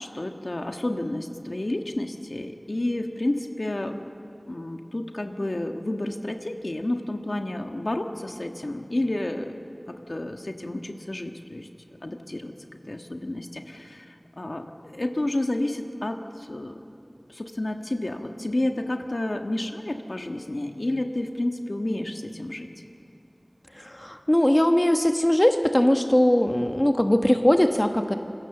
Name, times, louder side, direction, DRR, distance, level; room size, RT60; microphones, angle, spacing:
voice 1, 0.0-4.0 4.5-9.6 9.9-11.7 12.0-12.5 12.9-16.8 17.3-22.7, left 1 dB, 65° left, 4 dB, 1.5 m, -30 dB
voice 2, 23.7-28.2, left 1 dB, 30° left, 6 dB, 1.2 m, -20 dB
26.5 x 22.0 x 7.2 m, 2.5 s
wide cardioid pair, 40°, 0 cm